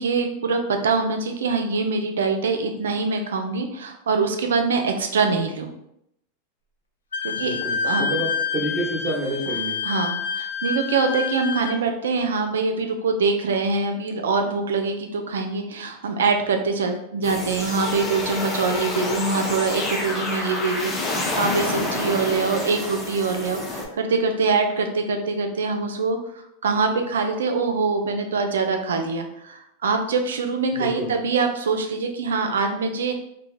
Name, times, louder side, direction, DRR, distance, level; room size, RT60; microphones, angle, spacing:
voice 1, 0.0-5.7 7.2-7.5 7.8-8.1 9.8-26.2 26.6-33.1, right 4 dB, 80° right, 5 dB, 0.3 m, -24 dB
Wind instrument woodwind instrument, 7.1-11.8, left 6 dB, 90° left, 0.3 m, -28 dB
voice 2, 7.4-9.8 30.7-31.1, right 1 dB, 25° right, -9 dB, 0.9 m, -28 dB
sound 1, 17.2-23.9, left 2 dB, 25° left, 0.5 m, -28 dB
2.7 x 2.0 x 2.3 m, 0.78 s
hypercardioid pair, 100°, 0 cm